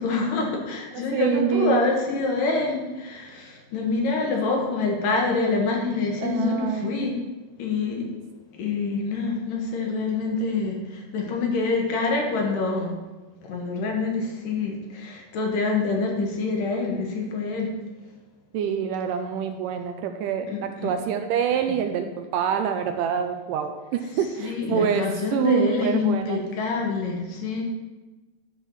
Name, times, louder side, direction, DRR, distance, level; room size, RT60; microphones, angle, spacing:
voice 1, 0.0-7.2 7.6-8.1 8.6-10.8 11.1-12.9 13.5-17.7 20.5-20.9 21.7-21.8 24.4-27.6, left 3 dB, 70° left, 0 dB, 3.1 m, -26 dB
voice 2, 1.1-1.8 6.2-7.1 18.5-20.5 20.8-25.0 25.3-26.4, right 8 dB, 80° right, 6 dB, 2.1 m, -26 dB
11.0 x 4.5 x 7.0 m, 1.2 s
omnidirectional pair, 4.1 m